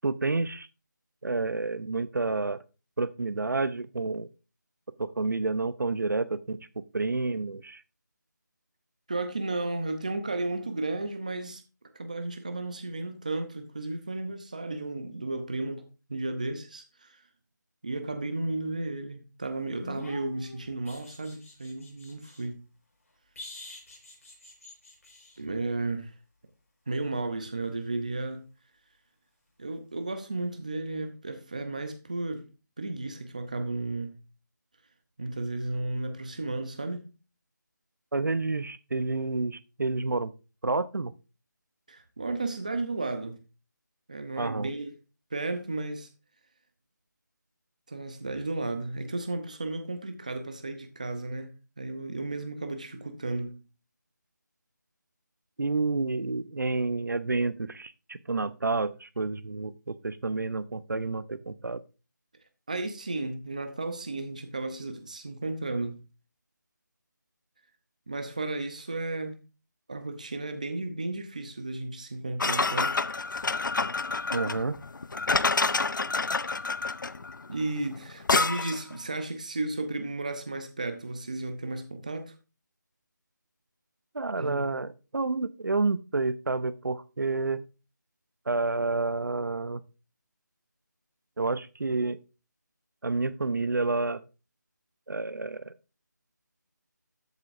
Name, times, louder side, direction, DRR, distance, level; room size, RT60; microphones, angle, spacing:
voice 1, 0.0-0.7 1.2-2.6 3.0-4.3 5.0-7.8 38.1-40.3 40.6-41.1 44.4-44.7 55.6-61.8 74.3-74.8 84.1-87.6 88.5-89.8 91.4-92.2 93.0-94.2 95.1-95.7, right 3 dB, 70° right, 0.8 m, -29 dB
voice 2, 9.1-11.6 11.9-17.2 17.8-22.6 25.4-26.1 26.9-28.4 29.6-32.5 32.8-34.2 35.2-37.0 41.9-43.4 44.1-44.9 45.3-46.1 47.9-53.6 62.7-66.0 68.1-69.4 69.9-72.9 77.5-82.3 84.4-84.7, right 2 dB, 25° right, 0.7 m, -34 dB
sound 1, 19.8-22.5 23.4-25.4 28.1-28.2, left 2 dB, 45° left, 5.1 m, -46 dB
sound 2, 72.4-78.9, left 3 dB, 90° left, 0.6 m, -28 dB
13.5 x 8.1 x 2.6 m
figure-of-eight pair, 180°, 10 cm